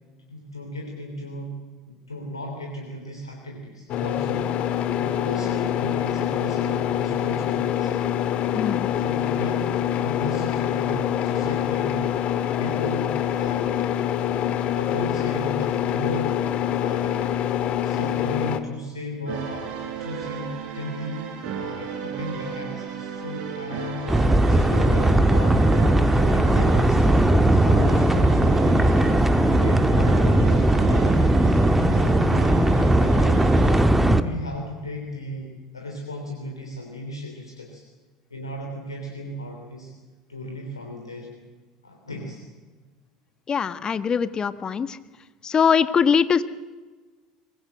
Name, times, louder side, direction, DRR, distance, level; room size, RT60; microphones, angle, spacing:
voice 1, 0.3-1.6 1.9-4.5 4.9-7.9 8.9-12.0 12.3-13.9 14.3-17.4 17.8-25.7 26.0-29.1 29.3-33.4 34.2-37.8 38.3-39.9 40.3-41.3 41.8-42.5, left 1 dB, 90° left, 1 dB, 3.2 m, -36 dB
sound 1, 3.9-18.6, left 10 dB, 50° left, 1.8 m, -25 dB
voice 2, 8.5-8.9 34.1-34.2 43.5-45.0 45.4-46.4, left 7 dB, 30° left, 13 dB, 1.3 m, -22 dB
sound 2, 19.2-33.8, right 7 dB, 50° right, 6.6 m, -34 dB
sound 3, 24.1-34.2, right 1 dB, 5° right, 1.7 m, -18 dB
24.0 x 21.0 x 7.8 m, 1.3 s
figure-of-eight pair, 70°, 3 cm